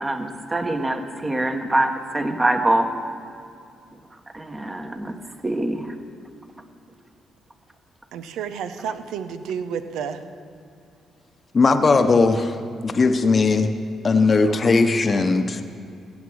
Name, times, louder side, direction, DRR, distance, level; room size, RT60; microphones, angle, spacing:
voice 1, 0.0-2.9 4.3-5.1 5.4-5.9, right 1 dB, 20° right, 5 dB, 1.4 m, -24 dB
voice 2, 8.1-10.2, right 7 dB, 85° right, 10 dB, 0.8 m, -30 dB
voice 3, 11.5-12.6 12.8-13.7 14.0-15.6, left 4 dB, 40° left, 7 dB, 0.9 m, -18 dB
16.0 x 7.4 x 6.4 m, 2.4 s
supercardioid pair, 65°, 0 cm